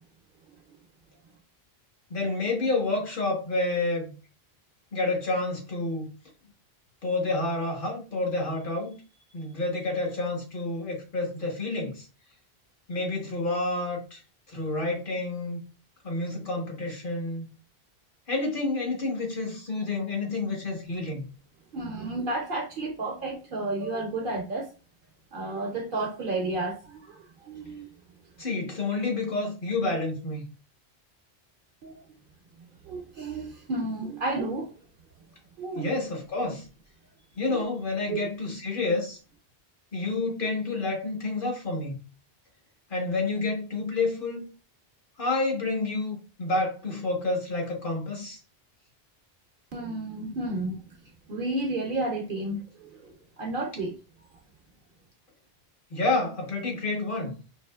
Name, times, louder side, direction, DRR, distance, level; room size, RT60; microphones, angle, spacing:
voice 1, 2.1-4.1 4.9-6.1 7.0-9.0 9.3-12.1 12.9-14.2 14.5-15.6 16.0-17.5 18.3-21.2 28.4-30.4 35.7-36.7 37.4-39.2 39.9-42.0 42.9-44.4 45.2-48.4 55.9-57.3, left 2 dB, 55° left, 1.3 m, -29 dB
voice 2, 21.7-24.7 25.3-27.9 31.8-32.0 32.9-34.7 35.6-35.9 38.1-38.2 49.7-50.9 51.3-54.0, right 2 dB, 60° right, 0.7 m, -32 dB
4.8 x 2.6 x 2.3 m
omnidirectional pair, 1.1 m